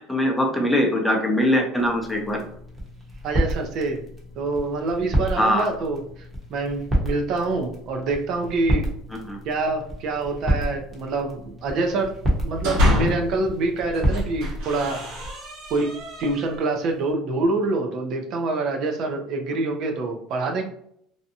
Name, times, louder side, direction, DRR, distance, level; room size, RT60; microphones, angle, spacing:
voice 1, 0.0-2.4 5.4-5.7 9.3-9.4, equal, 5° left, 1 dB, 0.7 m, -22 dB
sound 1, 1.8-15.3, right 1 dB, 25° right, 0.9 m, -30 dB
voice 2, 3.2-4.0 4.4-6.0 6.5-8.8 9.4-12.1 12.4-15.0 15.7-15.9 16.2-20.6, right 3 dB, 60° right, 3 dB, 0.6 m, -26 dB
sound 2, 12.3-13.4 13.9-16.7, left 1 dB, 80° right, 1.2 m, -26 dB
2.7 x 2.1 x 2.7 m, 0.67 s
supercardioid pair, 105°, 0 cm